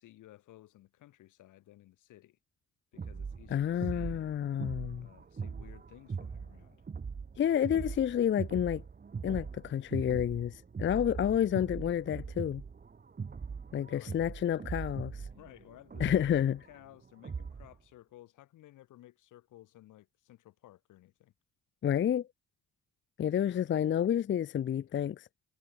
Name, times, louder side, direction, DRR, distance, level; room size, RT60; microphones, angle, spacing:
voice 1, 0.0-2.4 2.9-4.3 5.0-6.8 13.9-14.2 15.3-21.3, left 15 dB, 85° left, 5.6 m, -56 dB
sound 1, 3.0-17.7, right 5 dB, 30° right, 1.7 m, -41 dB
voice 2, 3.5-5.1 7.4-8.8 9.2-12.6 13.7-15.2 16.0-16.6 21.8-22.3 23.2-25.3, left 10 dB, 40° left, 0.5 m, -30 dB
cardioid pair, 90°, 30 cm